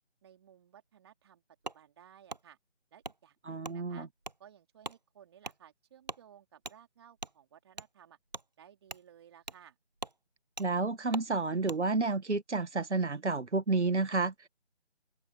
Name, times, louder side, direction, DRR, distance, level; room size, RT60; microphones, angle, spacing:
voice 1, 0.2-2.6 2.9-4.1 4.4-8.2 8.6-9.8, right 9 dB, 20° right, 3.6 m, -58 dB
Wood, 1.6-1.8 2.3-2.4 3.0-3.2 3.6-3.8 4.2-4.4 4.8-5.0 5.4-5.6 6.0-6.2 6.6-6.8 7.2-7.3 7.7-7.9 8.3-8.5 8.9-9.0 9.5-9.6 10.0-10.2 10.6-10.7 11.1-11.3 11.7-11.8, right 2 dB, 40° right, 0.4 m, -42 dB
voice 2, 3.5-4.1 10.6-14.5, right 3 dB, 75° right, 1.6 m, -30 dB
open air
figure-of-eight pair, 165°, 35 cm